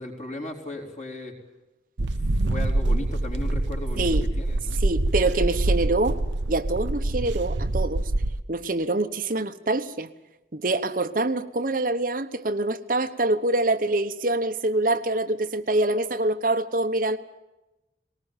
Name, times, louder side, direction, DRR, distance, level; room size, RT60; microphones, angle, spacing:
voice 1, 0.0-1.3 2.0-4.1 4.4-4.8, left 2 dB, 40° left, 1 dB, 4.2 m, -36 dB
sound 1, 2.0-8.4, right 2 dB, 80° right, 0.9 m, -25 dB
voice 2, 4.8-6.2 6.5-8.1 8.5-10.1 10.5-17.2, right 2 dB, 45° right, 8 dB, 1.0 m, -25 dB
20.0 x 19.0 x 9.0 m, 0.99 s
head